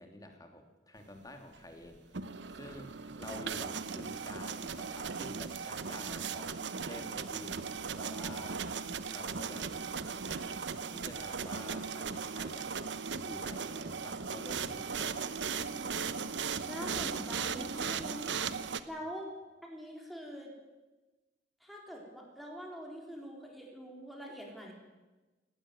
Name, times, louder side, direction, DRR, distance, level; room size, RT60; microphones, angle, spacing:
voice 1, 0.0-2.2 2.5-7.6 8.0-8.7 9.1-10.1 10.9-12.7 13.2-15.2 17.1-17.3, left 1 dB, 20° left, 4 dB, 2.9 m, -49 dB
sound 1, 2.0-18.8, right 5 dB, 75° right, 0.9 m, -37 dB
voice 2, 16.7-19.3 19.6-20.5 21.6-24.7, equal, ahead, -1 dB, 4.0 m, -44 dB
18.0 x 16.5 x 9.5 m, 1.2 s
head